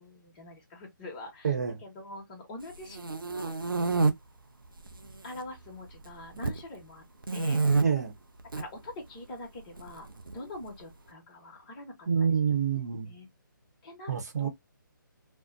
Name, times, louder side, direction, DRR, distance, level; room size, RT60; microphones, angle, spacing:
voice 1, 0.0-3.5 5.2-7.0 7.3-7.6 8.5-10.1 10.3-12.6 13.1-13.3 13.8-14.5, left 2 dB, 25° left, 0.9 m, -44 dB
voice 2, 1.4-1.8 7.8-8.1 12.1-13.1 14.1-14.5, right 7 dB, 50° right, 0.9 m, -27 dB
sound 1, 2.7-4.1 4.8-5.4 5.7-6.6 7.2-7.8 8.4-8.6 9.8-10.7, right 3 dB, 85° right, 0.5 m, -28 dB
2.5 x 2.1 x 2.4 m
figure-of-eight pair, 145°, 11 cm